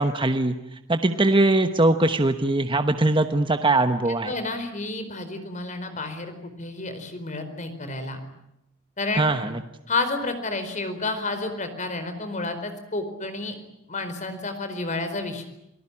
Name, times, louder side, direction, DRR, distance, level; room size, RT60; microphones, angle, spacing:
voice 1, 0.0-4.3 9.1-9.6, right 2 dB, 25° right, 7 dB, 1.1 m, -21 dB
voice 2, 4.2-8.2 9.0-9.3 9.9-13.5 13.9-15.4, left 2 dB, 40° left, 9 dB, 4.6 m, -30 dB
28.5 x 19.0 x 9.9 m, 0.82 s
head